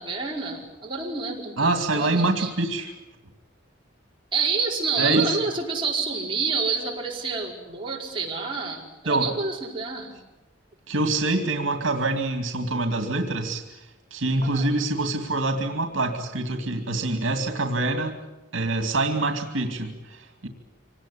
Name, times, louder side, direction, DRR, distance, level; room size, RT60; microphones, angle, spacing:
voice 1, 0.0-2.5 4.3-10.1 14.4-14.7, right 4 dB, 25° right, -2 dB, 5.0 m, -28 dB
voice 2, 1.6-2.9 5.0-5.3 9.1-9.3 10.9-18.2 18.5-20.5, right 2 dB, 80° right, 6 dB, 2.5 m, -25 dB
25.0 x 19.0 x 9.9 m, 1.0 s
head